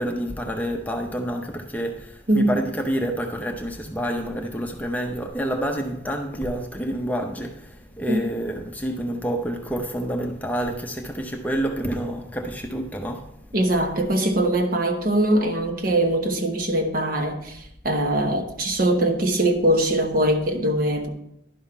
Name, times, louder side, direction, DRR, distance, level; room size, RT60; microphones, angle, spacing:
voice 1, 0.0-13.3, equal, 10° left, 0.6 m, -28 dB
voice 2, 13.5-21.1, right 1 dB, 50° right, 1.0 m, -22 dB
11.0 x 5.6 x 4.4 m
head